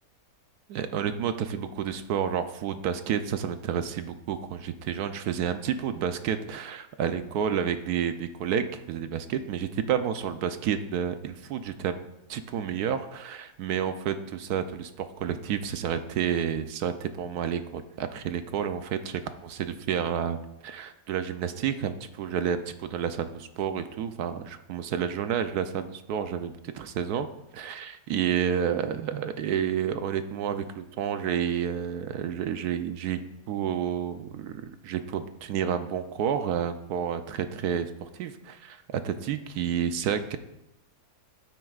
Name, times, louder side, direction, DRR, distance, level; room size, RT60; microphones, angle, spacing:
voice 1, 0.7-12.0 12.3-20.4 20.6-27.3 27.5-33.2 33.5-40.4, right 8 dB, 75° right, 9 dB, 1.1 m, -30 dB
12.5 x 9.4 x 2.4 m, 0.87 s
omnidirectional pair, 1.7 m